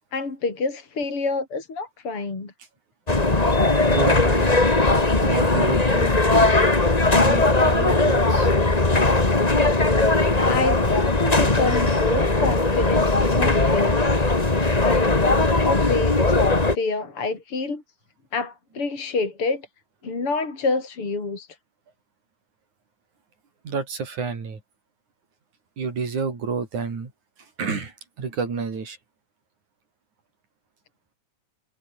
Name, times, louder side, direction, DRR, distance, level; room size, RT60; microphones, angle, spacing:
voice 1, 0.1-2.5 10.5-14.1 14.8-17.8 18.3-19.6 20.0-21.5, left 3 dB, 45° left, 5.7 m, -27 dB
sound 1, 3.1-16.7, left 2 dB, 15° left, 1.8 m, -19 dB
voice 2, 3.9-4.4 5.2-6.1 7.1-8.5 14.4-14.5 23.6-24.6 25.8-27.1 27.4-29.0, right 5 dB, 70° right, 5.9 m, -29 dB
omnidirectional pair, 3.5 m